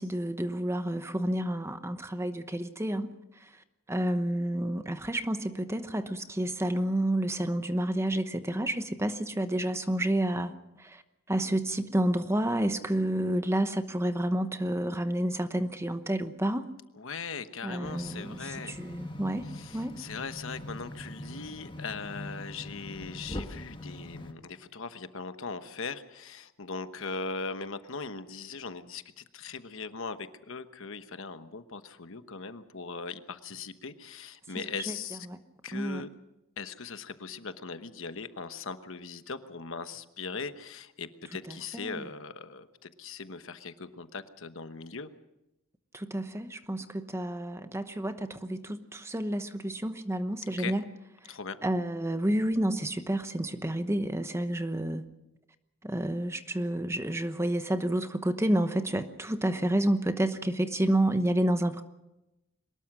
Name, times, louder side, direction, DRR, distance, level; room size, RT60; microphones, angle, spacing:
voice 1, 0.0-3.1 3.9-10.5 10.8-11.0 11.3-16.7 17.6-18.4 18.8-20.0 34.9-35.0 35.3-35.4 35.7-36.0 41.5-42.0 45.9-50.8 51.6-55.0 55.8-61.8, right 1 dB, 10° right, 9 dB, 1.0 m, -29 dB
voice 2, 17.0-18.7 19.4-35.3 35.6-36.1 36.6-45.1 50.5-50.7 51.3-51.6, left 4 dB, 65° left, 10 dB, 1.1 m, -40 dB
sound 1, 17.8-24.3, left 1 dB, 25° left, 1.6 m, -42 dB
23.0 x 20.0 x 6.1 m, 0.93 s
head